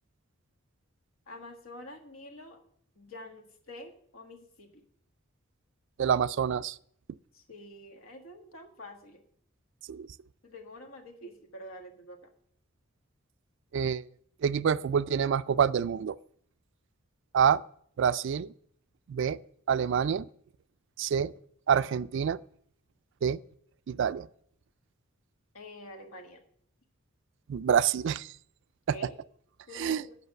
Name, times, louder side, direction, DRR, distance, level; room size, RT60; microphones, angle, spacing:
voice 1, 1.3-2.6 2.9-4.8 7.3-9.2 10.4-12.3 25.5-26.4 28.9-29.2 29.7-30.1, left 1 dB, 80° left, 1.5 m, -47 dB
voice 2, 6.0-6.8 9.9-10.1 13.7-14.1 14.4-16.2 17.3-17.6 18.0-18.5 19.1-19.4 19.7-20.3 21.0-21.3 21.7-22.4 23.2-23.4 23.9-24.3 27.5-28.3 29.7-30.0, right 7 dB, 60° right, 0.3 m, -27 dB
8.0 x 6.0 x 7.6 m
head